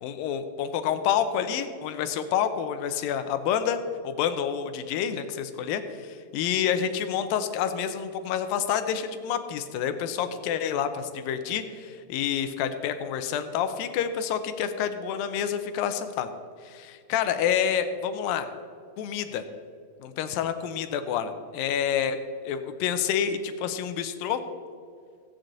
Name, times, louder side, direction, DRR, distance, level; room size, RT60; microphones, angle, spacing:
voice 1, 0.0-3.8 4.0-16.3 16.6-18.5 19.0-19.4 20.0-22.2 22.4-24.4, left 8 dB, 85° left, 9 dB, 2.4 m, -28 dB
15.5 x 8.8 x 3.9 m, 2.3 s
omnidirectional pair, 4.1 m